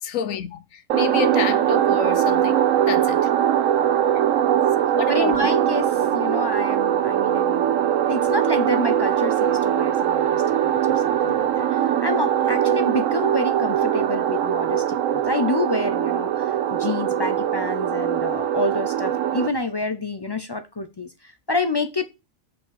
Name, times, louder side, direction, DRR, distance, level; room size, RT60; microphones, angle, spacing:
voice 1, 0.0-3.2 4.8-5.6, left 8 dB, 85° left, 1.2 m, -29 dB
sound 1, 0.9-19.5, right 10 dB, 80° right, 1.0 m, -21 dB
voice 2, 5.1-7.7 8.1-22.0, left 2 dB, 35° left, 0.3 m, -28 dB
5.6 x 4.4 x 6.3 m
omnidirectional pair, 1.4 m